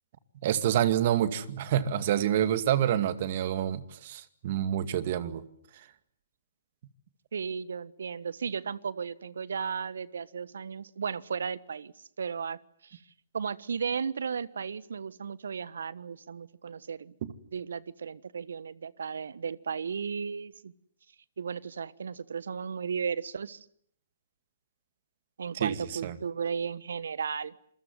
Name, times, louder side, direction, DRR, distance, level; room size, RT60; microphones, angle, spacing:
voice 1, 0.4-5.4 17.2-17.3 25.5-26.2, right 10 dB, 45° right, 12 dB, 2.2 m, -27 dB
voice 2, 7.3-13.0 13.3-17.1 17.5-20.7 21.4-23.6 25.4-27.5, right 6 dB, 65° right, 19 dB, 1.3 m, -35 dB
27.0 x 23.0 x 9.5 m, 0.67 s
figure-of-eight pair, 130°, 0 cm